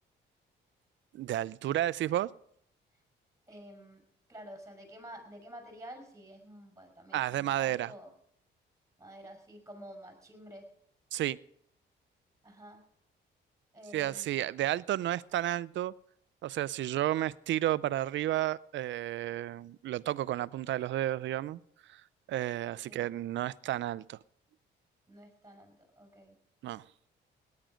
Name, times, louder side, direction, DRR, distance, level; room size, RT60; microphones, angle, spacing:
voice 1, 1.1-2.3 7.1-7.9 11.1-11.4 13.9-15.9 16.4-21.6 21.9-22.0 22.3-24.2 26.6-26.8, right 13 dB, 70° right, 20 dB, 0.5 m, -32 dB
voice 2, 3.5-4.0 4.3-8.1 9.0-10.7 12.4-12.8 13.7-14.5 22.9-23.0 25.1-26.4, equal, 15° right, 4 dB, 5.8 m, -50 dB
18.0 x 10.5 x 5.1 m, 0.68 s
cardioid pair, 90°, 20 cm